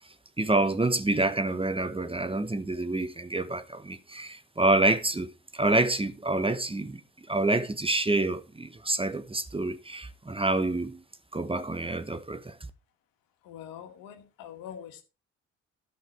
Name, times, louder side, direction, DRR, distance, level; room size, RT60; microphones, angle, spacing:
voice 1, 0.4-7.0 7.3-11.0 11.3-12.6, right 2 dB, 15° right, 1.1 m, -27 dB
voice 2, 13.4-15.0, left 9 dB, 75° left, 1.7 m, -44 dB
13.0 x 5.7 x 4.3 m
hypercardioid pair, 50°, 35 cm